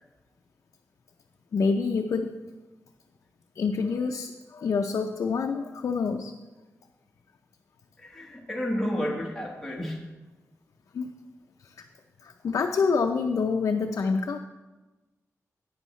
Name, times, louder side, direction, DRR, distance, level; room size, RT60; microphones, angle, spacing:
voice 1, 1.5-2.3 3.6-6.3 10.9-11.1 11.8-11.9 12.2-14.4, left 5 dB, 65° left, 4 dB, 0.5 m, -27 dB
voice 2, 8.0-10.0, equal, 5° left, -1 dB, 1.2 m, -31 dB
11.0 x 9.1 x 3.1 m, 1.2 s
wide cardioid pair, 175°, 6 cm